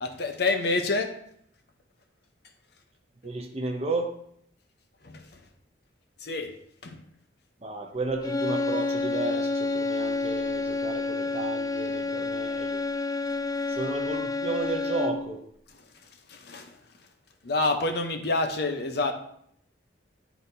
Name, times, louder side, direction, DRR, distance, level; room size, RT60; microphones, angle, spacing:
voice 1, 0.0-1.1 6.2-6.5 6.8-7.0 16.3-16.7 17.4-19.1, left 3 dB, 55° left, 0.7 m, -27 dB
voice 2, 3.2-4.1 7.6-12.8 13.7-15.4, right 2 dB, 30° right, 0.7 m, -33 dB
sound 1, 8.2-15.4, left 3 dB, 20° left, 0.5 m, -29 dB
11.5 x 4.0 x 2.7 m
head